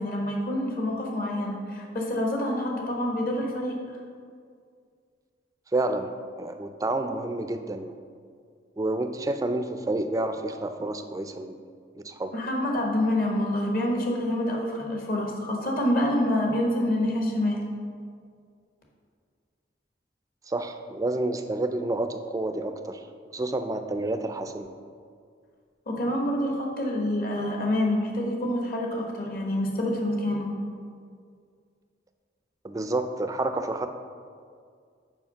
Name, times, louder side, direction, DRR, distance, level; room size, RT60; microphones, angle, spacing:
voice 1, 0.0-3.8 12.3-17.6 25.9-30.5, left 1 dB, 50° left, -1 dB, 1.2 m, -27 dB
voice 2, 5.7-7.9 8.8-11.6 12.0-12.3 20.5-23.0 23.3-24.7 32.6-33.9, right 2 dB, 20° right, 7 dB, 0.3 m, -29 dB
5.7 x 4.7 x 5.6 m, 2.1 s
head